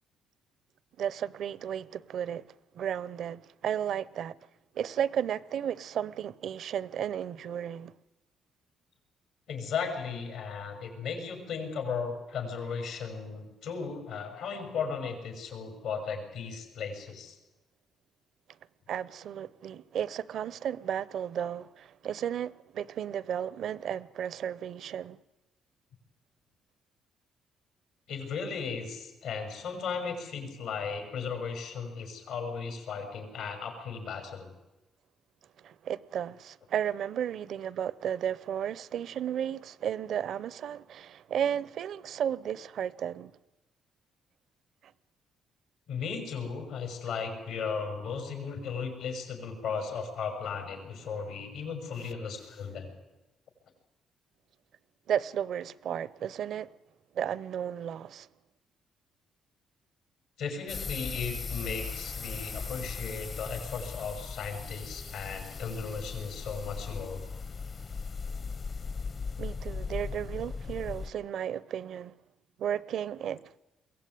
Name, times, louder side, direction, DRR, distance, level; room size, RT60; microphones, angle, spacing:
voice 1, 1.0-2.5 2.7-4.4 4.7-7.9 18.9-25.2 35.6-43.3 55.1-56.7 57.1-58.3 69.4-72.1 72.6-73.6, right 9 dB, 70° right, 0.7 m, -33 dB
voice 2, 9.5-17.4 28.1-34.5 45.9-52.9 60.4-67.2, left 5 dB, 85° left, 6.1 m, -36 dB
sound 1, 60.7-71.1, left 5 dB, 45° left, 0.8 m, -38 dB
22.0 x 16.5 x 9.4 m
cardioid pair, 90°, 0 cm